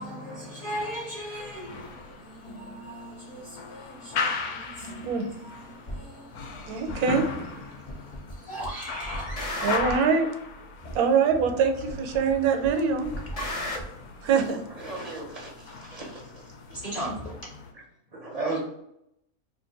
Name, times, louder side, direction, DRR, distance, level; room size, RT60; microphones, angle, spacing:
voice 1, 0.0-9.7 13.3-13.4 16.7-17.5, equal, 35° left, 0.7 m, -39 dB
sound 1, 1.3-17.7, left 4 dB, 75° left, 1.1 m, -38 dB
sound 2, 5.9-6.0 6.9-7.0 7.9-8.3 8.6-10.1 10.9-11.0 11.9-12.3 12.6-13.8, left 1 dB, 55° left, 0.4 m, -34 dB
voice 2, 6.7-7.3 9.6-10.3 10.9-13.1 14.2-14.6, right 6 dB, 80° right, 1.1 m, -23 dB
voice 3, 14.8-16.2 18.1-18.6, right 3 dB, 50° right, 0.4 m, -34 dB
2.7 x 2.5 x 3.9 m
omnidirectional pair, 1.6 m